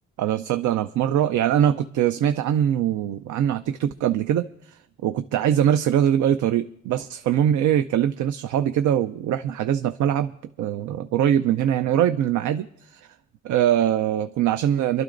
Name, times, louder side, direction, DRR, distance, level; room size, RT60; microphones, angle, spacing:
voice 1, 0.2-10.3 10.6-13.0 13.4-15.0, right 10 dB, 75° right, 10 dB, 0.6 m, -22 dB
27.5 x 12.0 x 2.6 m, 0.75 s
cardioid pair, 90°, 30 cm